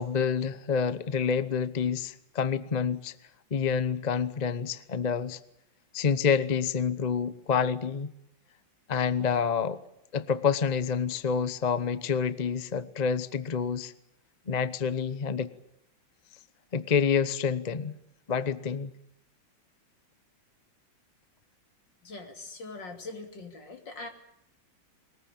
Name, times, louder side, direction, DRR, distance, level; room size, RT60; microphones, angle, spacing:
voice 1, 0.0-3.1 3.5-5.4 5.9-8.1 8.9-9.8 10.1-13.9 14.5-15.5 16.7-17.9 18.3-18.9, left 6 dB, 45° left, 14 dB, 0.5 m, -28 dB
voice 2, 22.0-24.1, left 2 dB, 65° left, 4 dB, 3.6 m, -42 dB
22.0 x 20.5 x 8.7 m, 0.78 s
omnidirectional pair, 2.2 m